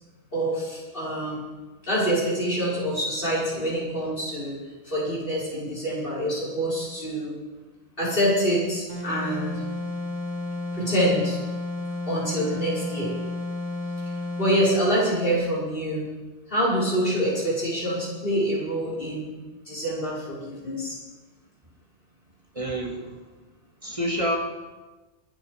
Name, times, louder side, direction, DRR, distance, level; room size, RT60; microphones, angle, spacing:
voice 1, 0.3-1.5 1.8-4.6 4.8-7.3 8.0-9.6 10.7-11.4 12.1-13.1 14.4-16.1 16.5-19.3 19.7-21.0, equal, 50° left, -7 dB, 6.1 m, -26 dB
sound 1, 8.9-14.7, left 2 dB, 75° right, 4.4 m, -32 dB
voice 2, 22.5-23.2 23.8-24.4, equal, 25° right, 1 dB, 2.3 m, -28 dB
25.5 x 8.8 x 5.1 m, 1.2 s
omnidirectional pair, 1.2 m